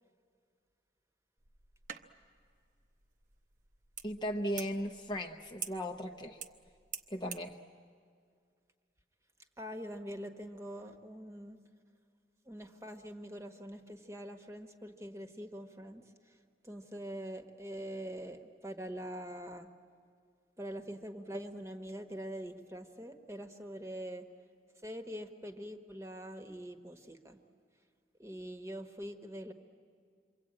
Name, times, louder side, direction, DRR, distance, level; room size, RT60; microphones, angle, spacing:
sound 1, 1.4-7.5, right 8 dB, 45° right, 0.8 m, -48 dB
voice 1, 4.0-6.4 7.1-7.6, equal, 25° left, 2 dB, 0.8 m, -37 dB
voice 2, 9.6-11.6 12.4-16.4 16.6-19.7 20.6-24.3 24.8-27.4 28.2-29.5, equal, 15° right, 6 dB, 1.2 m, -44 dB
27.5 x 23.5 x 8.8 m, 2.1 s
head